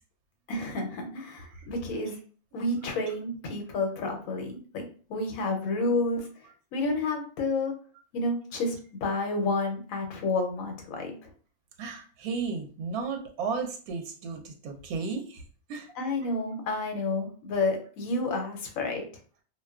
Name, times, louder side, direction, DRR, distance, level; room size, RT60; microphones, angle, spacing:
voice 1, 0.5-2.2 2.5-4.8 5.1-6.2 6.7-7.7 8.1-11.1 16.0-19.0, left 2 dB, 75° left, 3 dB, 1.0 m, -30 dB
voice 2, 11.8-15.4 15.7-15.9, right 5 dB, 85° right, 3 dB, 1.0 m, -34 dB
2.5 x 2.2 x 2.2 m, 0.41 s
omnidirectional pair, 1.5 m